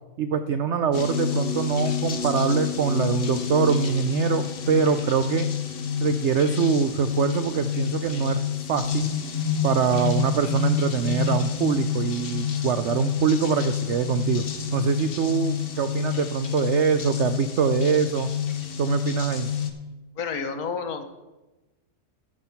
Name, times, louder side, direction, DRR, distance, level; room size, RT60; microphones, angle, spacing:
voice 1, 0.2-5.5 6.0-9.1 9.6-14.4 14.7-18.3 18.8-19.5, right 7 dB, 75° right, 10 dB, 0.6 m, -24 dB
sound 1, 0.9-19.7, left 8 dB, 45° left, 0.9 m, -28 dB
voice 2, 20.2-21.0, left 5 dB, 65° left, 8 dB, 1.4 m, -30 dB
13.0 x 6.2 x 5.7 m, 1.1 s
omnidirectional pair, 1.7 m